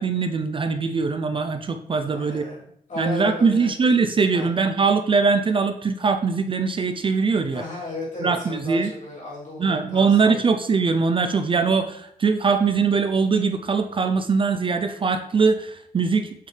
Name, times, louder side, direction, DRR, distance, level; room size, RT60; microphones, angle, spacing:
voice 1, 0.0-2.4 3.0-7.6 8.2-8.9 9.6-16.5, right 4 dB, 35° right, 7 dB, 0.5 m, -22 dB
voice 2, 2.0-3.7 4.3-4.5 7.5-10.4, left 2 dB, 50° left, -6 dB, 3.4 m, -35 dB
8.1 x 6.2 x 3.3 m, 0.71 s
wide cardioid pair, 180°, 15 cm